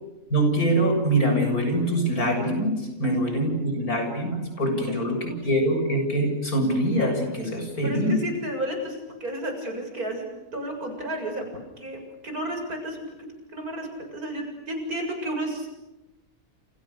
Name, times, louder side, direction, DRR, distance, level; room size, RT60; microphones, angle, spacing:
voice 1, 0.3-8.2, right 1 dB, 80° left, 4 dB, 7.5 m, -24 dB
voice 2, 4.9-5.4 7.8-13.0 13.5-15.7, right 1 dB, 85° right, 4 dB, 7.7 m, -32 dB
29.5 x 29.5 x 6.8 m, 1.0 s
omnidirectional pair, 1.5 m